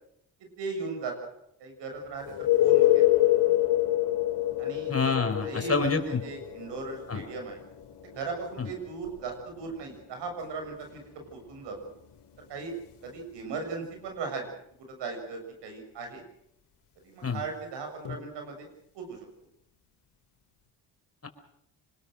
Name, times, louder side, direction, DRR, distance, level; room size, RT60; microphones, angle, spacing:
voice 1, 0.6-1.3 1.6-3.0 4.6-4.9 5.4-7.6 8.0-11.0 11.3-11.8 12.5-12.7 13.0-14.5 14.9-16.2 17.0-18.7 19.0-19.3, right 4 dB, 75° right, 4 dB, 7.3 m, -37 dB
sound 1, 2.2-13.8 18.1-18.2, left 15 dB, 65° left, 3.7 m, -28 dB
voice 2, 4.9-6.2 7.1-7.2 8.6-8.7 17.2-17.4 21.2-21.3, left 4 dB, 35° left, 7 dB, 4.7 m, -27 dB
26.0 x 21.0 x 6.6 m, 0.74 s
supercardioid pair, 60°, 42 cm